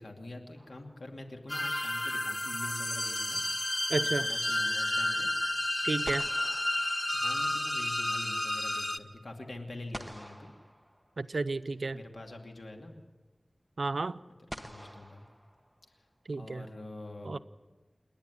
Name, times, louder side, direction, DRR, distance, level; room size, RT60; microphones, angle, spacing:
voice 1, 0.0-3.8 4.2-5.3 7.1-10.5 11.9-13.0 14.5-15.2 16.3-17.4, left 2 dB, 75° left, 3 dB, 2.5 m, -45 dB
sound 1, 0.6-1.4 5.5-5.6 6.0-7.8 9.9-11.5 12.9-13.0 14.5-16.1, equal, ahead, 1.1 m, -48 dB
sound 2, 1.5-9.0, left 1 dB, 25° left, 1.0 m, -31 dB
voice 2, 3.9-4.3 5.8-6.2 11.2-12.0 13.8-14.2 16.3-16.6 17.2-17.4, right 3 dB, 85° right, 13 dB, 0.6 m, -32 dB
28.0 x 10.5 x 9.9 m, 1.3 s
wide cardioid pair, 65°, 0 cm